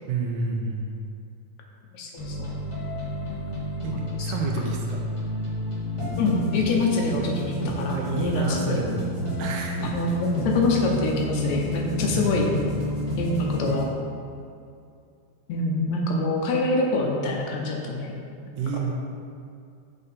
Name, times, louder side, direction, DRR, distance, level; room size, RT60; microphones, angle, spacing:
voice 1, 0.1-1.0 3.8-5.1 7.9-9.1 9.4-9.9 12.0-12.4 18.6-18.9, right 4 dB, 80° right, 1 dB, 2.2 m, -30 dB
voice 2, 1.9-2.5 4.2-4.3 6.2-8.8 9.8-12.5 13.2-13.8 15.5-18.1, left 2 dB, 75° left, 0 dB, 1.8 m, -25 dB
sound 1, 2.2-13.8, equal, 35° left, 0.4 m, -30 dB
6.7 x 5.1 x 4.2 m, 2.4 s
omnidirectional pair, 3.7 m